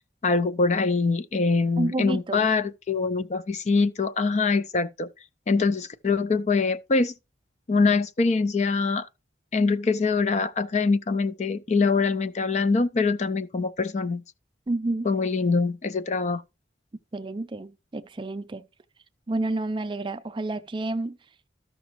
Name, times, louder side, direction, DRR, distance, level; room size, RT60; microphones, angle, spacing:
voice 1, 0.2-5.1 5.5-7.1 7.7-9.1 9.5-14.2 15.0-16.4, left 4 dB, 35° left, 0.4 m, -24 dB
voice 2, 1.8-2.5 14.7-15.1 17.1-18.7 19.3-21.2, right 2 dB, 25° right, 0.4 m, -29 dB
13.0 x 5.8 x 3.0 m
head